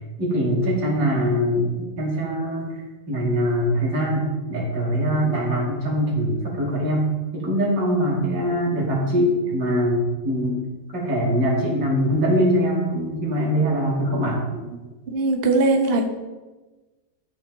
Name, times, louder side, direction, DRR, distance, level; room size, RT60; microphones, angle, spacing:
voice 1, 0.2-2.8 3.1-10.6 10.9-14.4, equal, 85° right, -4 dB, 3.2 m, -22 dB
voice 2, 15.1-16.1, right 2 dB, 45° right, 4 dB, 1.0 m, -20 dB
13.0 x 5.6 x 3.6 m, 1.2 s
omnidirectional pair, 1.9 m